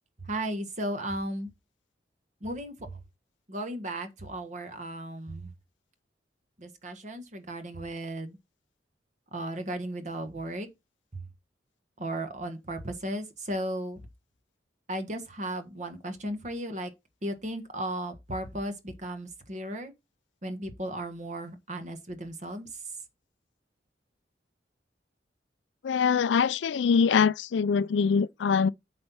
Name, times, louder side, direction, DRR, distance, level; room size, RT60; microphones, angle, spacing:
voice 1, 0.2-1.5 2.4-3.0 3.5-5.5 6.6-8.4 9.3-10.7 11.1-11.2 12.0-14.0 14.9-16.9 17.2-19.9 20.4-22.7, right 1 dB, 40° right, 1.4 m, -35 dB
voice 2, 25.8-28.7, left 6 dB, 80° left, 0.4 m, -23 dB
8.0 x 4.3 x 5.5 m
head